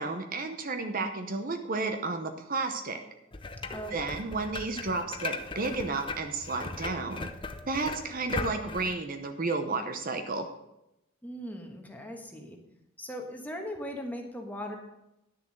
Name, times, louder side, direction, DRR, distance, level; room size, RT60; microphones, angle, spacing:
voice 1, 0.0-3.0 3.9-7.3 7.7-10.5, right 3 dB, 45° right, 6 dB, 0.8 m, -32 dB
sound 1, 3.3-8.9, left 3 dB, 25° left, 0.6 m, -38 dB
voice 2, 3.7-4.2 11.2-12.6 13.0-14.8, equal, 10° left, 2 dB, 1.3 m, -39 dB
10.5 x 6.8 x 6.4 m, 0.88 s
head